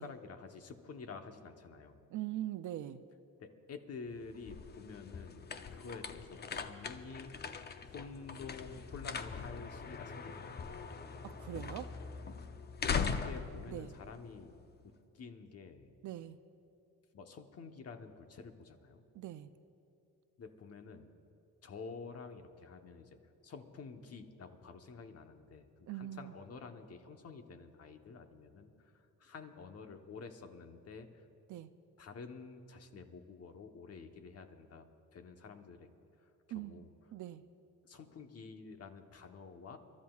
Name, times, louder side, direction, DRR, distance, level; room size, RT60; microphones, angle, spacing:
voice 1, 0.0-2.0 3.4-7.3 7.8-10.7 13.2-14.5 15.1-16.0 17.1-19.0 20.4-21.1 21.6-23.2 23.4-31.2 32.0-35.9 36.2-36.9 37.8-39.8, left 4 dB, 45° left, 6 dB, 1.1 m, -50 dB
voice 2, 2.1-3.0 11.2-12.0 13.7-13.9 16.0-16.4 19.1-19.5 25.9-26.4 31.5-31.7 36.5-37.4, right 13 dB, 60° right, 12 dB, 0.5 m, -42 dB
sound 1, 4.1-14.8, left 5 dB, 30° left, 0.6 m, -41 dB
30.0 x 12.5 x 2.4 m, 2.7 s
cardioid pair, 120°, 35 cm